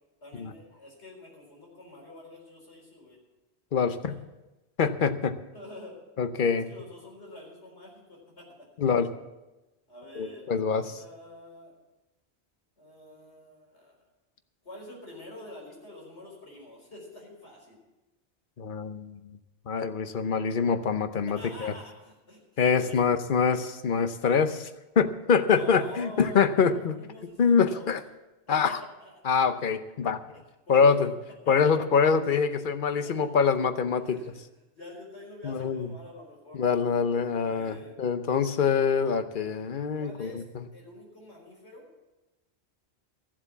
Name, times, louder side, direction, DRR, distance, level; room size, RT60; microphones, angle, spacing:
voice 1, 0.2-3.2 4.0-4.1 5.5-6.0 6.5-8.5 9.9-11.7 12.8-14.0 14.6-17.8 21.3-22.4 22.8-23.0 25.5-27.9 28.5-28.7 29.0-29.2 30.3-30.4 30.7-31.1 31.4-31.7 33.0-33.3 34.0-34.4 34.7-36.6 37.4-37.9 39.9-40.4 40.7-41.9, left 1 dB, 80° left, -2 dB, 4.6 m, -46 dB
voice 2, 3.7-4.2 4.8-5.3 6.2-6.7 8.8-9.1 10.2-11.0 18.6-19.2 19.7-21.7 22.6-24.7 25.0-26.9 27.4-28.0 28.5-28.8 29.2-30.2 30.7-31.1 31.5-34.2 35.4-35.9 36.5-40.6, left 6 dB, 55° left, 10 dB, 0.9 m, -25 dB
14.5 x 7.5 x 7.2 m, 1.0 s
omnidirectional pair, 1.1 m